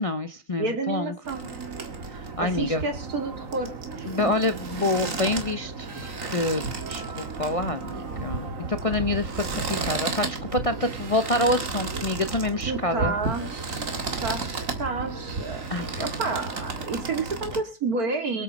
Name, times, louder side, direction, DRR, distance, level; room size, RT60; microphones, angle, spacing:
voice 1, 0.0-1.1 2.1-2.8 4.1-5.9 6.2-6.6 6.9-13.1 15.7-15.9, left 2 dB, 30° left, 9 dB, 0.7 m, -27 dB
voice 2, 0.6-1.5 2.4-3.7 4.0-4.3 12.6-13.8 14.2-14.5 14.8-18.4, right 3 dB, 75° right, 6 dB, 2.8 m, -30 dB
sound 1, 1.2-17.6, right 3 dB, 60° right, 2.3 m, -33 dB
23.5 x 8.3 x 5.2 m, 0.33 s
omnidirectional pair, 1.6 m